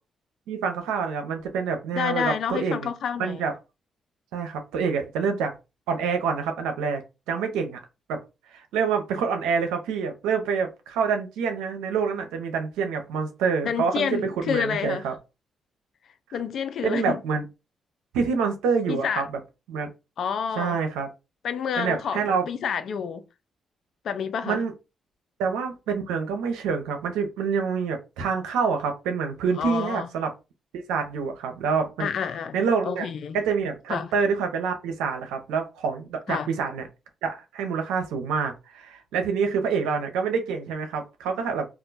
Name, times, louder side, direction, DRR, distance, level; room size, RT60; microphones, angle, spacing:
voice 1, 0.5-2.9 3.2-3.5 4.3-5.5 5.9-7.0 7.3-7.8 8.1-8.2 8.5-15.1 16.8-17.4 18.1-19.2 19.7-19.9 20.6-21.1 21.8-22.5 24.4-24.7 25.4-30.3 30.7-32.1 32.5-33.1 33.3-36.8 37.2-41.7, right 5 dB, 90° right, 0.6 m, -27 dB
voice 2, 1.9-3.5 13.6-15.0 16.3-17.2 18.9-19.2 20.2-20.8 21.4-23.2 24.0-24.6 29.6-30.1 32.0-33.4 33.9-34.1 36.3-36.5, left 7 dB, 70° left, 0.4 m, -29 dB
2.4 x 2.2 x 3.9 m
supercardioid pair, 55°, 0 cm